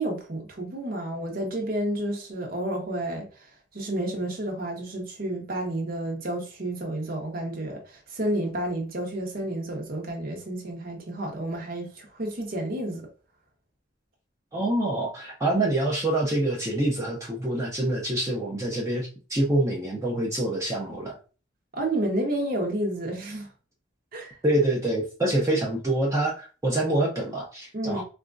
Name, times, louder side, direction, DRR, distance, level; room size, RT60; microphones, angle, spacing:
voice 1, 0.0-13.1 21.7-23.5 24.1-24.4 27.7-28.0, right 1 dB, 50° right, 0.9 m, -30 dB
voice 2, 14.5-21.2 24.4-28.0, right 1 dB, 15° right, 0.7 m, -26 dB
4.2 x 2.3 x 2.5 m
head